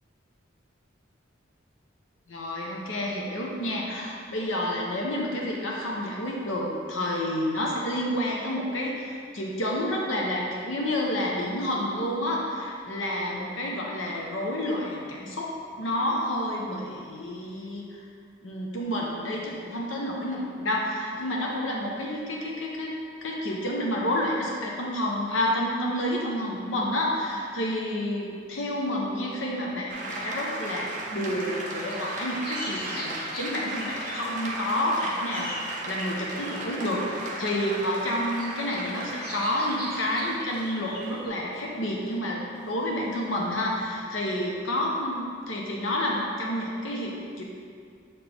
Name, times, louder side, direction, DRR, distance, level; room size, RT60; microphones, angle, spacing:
voice 1, 2.3-18.0 18.4-22.9 23.2-47.4, left 1 dB, 80° left, -2 dB, 1.0 m, -29 dB
sound 1, 29.9-44.3, right 1 dB, 40° right, 0.7 m, -36 dB
sound 2, 31.9-34.5 34.9-36.7 37.7-37.8 38.4-41.3, equal, 50° left, 1.0 m, -40 dB
7.3 x 4.3 x 3.5 m, 2.3 s
head